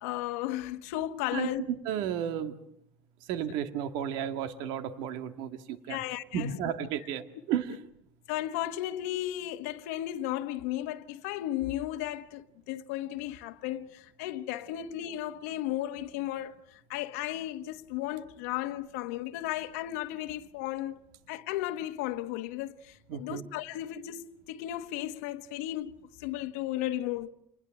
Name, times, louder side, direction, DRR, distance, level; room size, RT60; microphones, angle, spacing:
voice 1, 0.0-1.6 5.9-6.5 8.3-21.0 21.3-27.3, left 14 dB, 90° left, 1.2 m, -35 dB
voice 2, 1.9-2.6 3.3-6.0 6.3-7.8 23.1-23.5, right 9 dB, 70° right, 1.9 m, -33 dB
28.0 x 20.5 x 7.6 m
cardioid pair, 140°, 8 cm